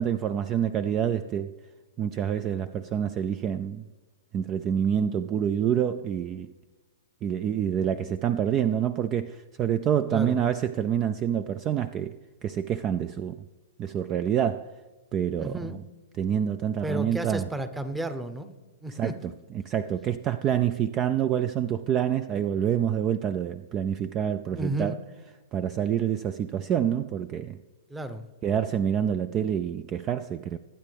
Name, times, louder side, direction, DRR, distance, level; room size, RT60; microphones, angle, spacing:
voice 1, 0.0-1.5 2.0-3.8 4.3-6.5 7.2-13.4 13.8-14.7 15.1-15.8 16.2-17.5 18.9-19.1 19.5-25.0 25.5-27.6 28.4-30.6, right 9 dB, 30° right, 0.4 m, -27 dB
voice 2, 15.4-15.8 16.8-18.5 18.8-19.3 24.5-25.0 27.9-28.3, right 1 dB, 5° right, 0.9 m, -32 dB
20.5 x 9.0 x 3.5 m
hypercardioid pair, 120°, 0 cm